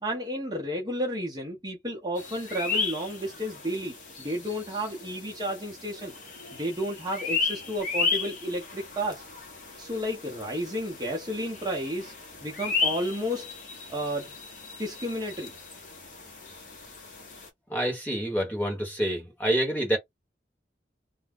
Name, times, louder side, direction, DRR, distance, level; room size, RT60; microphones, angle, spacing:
voice 1, 0.0-6.1 6.5-9.2 9.8-12.1 12.4-13.5 13.9-14.3 14.8-15.5, equal, 20° right, 0.7 m, -32 dB
sound 1, 2.2-17.5, left 4 dB, 45° left, 0.9 m, -35 dB
voice 2, 17.7-20.0, right 1 dB, 10° left, 1.1 m, -27 dB
2.4 x 2.2 x 3.5 m
head